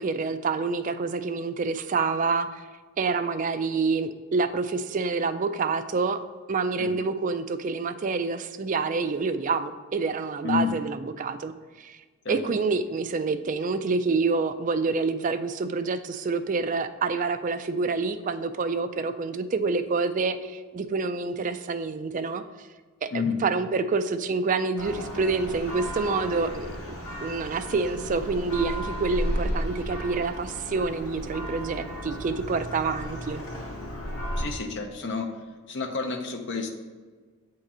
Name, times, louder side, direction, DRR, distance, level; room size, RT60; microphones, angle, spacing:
voice 1, 0.0-2.6 3.0-6.2 6.5-12.0 12.3-22.4 23.0-26.8 27.2-33.4, right 4 dB, 35° right, 9 dB, 0.3 m, -27 dB
voice 2, 10.4-10.8 12.2-12.4 23.1-23.4 34.4-35.4 35.7-36.7, left 5 dB, 55° left, 4 dB, 0.6 m, -29 dB
Church bell, 24.8-34.5, equal, 90° left, 2.1 m, -34 dB
8.0 x 3.8 x 4.3 m, 1.4 s
head